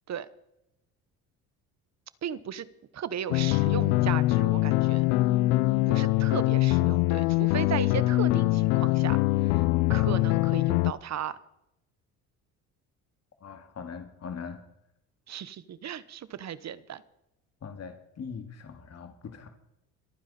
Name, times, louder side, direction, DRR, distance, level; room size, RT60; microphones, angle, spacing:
voice 1, 2.2-2.7 2.9-5.0 5.9-9.5 9.9-11.4 15.3-17.0, right 9 dB, 45° right, 17 dB, 1.1 m, -36 dB
sound 1, 3.3-10.9, left 19 dB, 85° left, 0.6 m, -23 dB
voice 2, 13.4-14.6 17.6-19.5, left 6 dB, 40° left, 6 dB, 2.4 m, -41 dB
25.0 x 9.5 x 4.3 m, 0.84 s
supercardioid pair, 85°, 37 cm